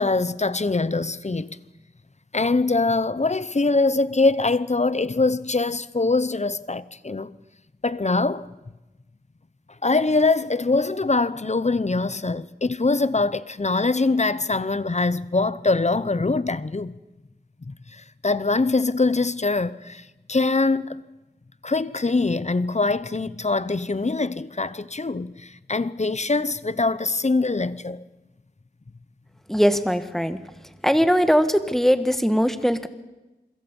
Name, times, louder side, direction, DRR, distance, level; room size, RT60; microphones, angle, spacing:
voice 1, 0.0-1.6 2.3-7.3 7.8-8.5 9.8-16.9 17.7-21.0 21.6-28.0, left 3 dB, 40° left, 0.8 m, -23 dB
voice 2, 29.5-30.4 30.8-32.9, equal, ahead, 1.6 m, -20 dB
28.0 x 22.0 x 5.5 m
wide cardioid pair, 60°, 19 cm